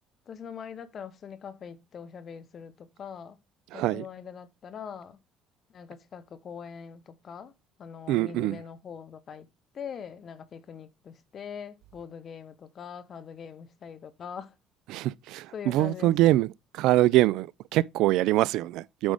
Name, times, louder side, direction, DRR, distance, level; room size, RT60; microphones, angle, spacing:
voice 1, 0.3-3.4 3.7-5.2 5.7-7.5 7.8-9.5 9.7-14.5 15.5-16.3, left 7 dB, 50° left, 1.0 m, -42 dB
voice 2, 3.7-4.0 8.1-8.6 14.9-16.5 16.7-19.1, right 16 dB, 75° right, 0.3 m, -24 dB
8.6 x 5.0 x 3.5 m
supercardioid pair, 70°, 0 cm